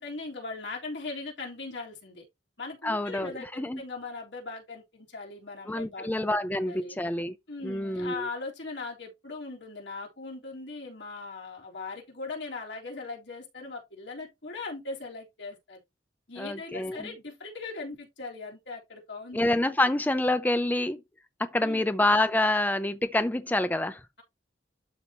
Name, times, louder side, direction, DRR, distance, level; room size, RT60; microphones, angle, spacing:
voice 1, 0.0-2.3 2.6-6.3 6.7-7.0 7.5-15.8 16.3-19.4 21.6-21.8, left 3 dB, 75° left, 3.5 m, -39 dB
voice 2, 2.8-3.8 5.7-7.3 7.6-8.3 16.4-17.1 19.3-21.0 21.4-24.0, left 1 dB, 10° left, 0.4 m, -27 dB
12.0 x 4.5 x 2.8 m
head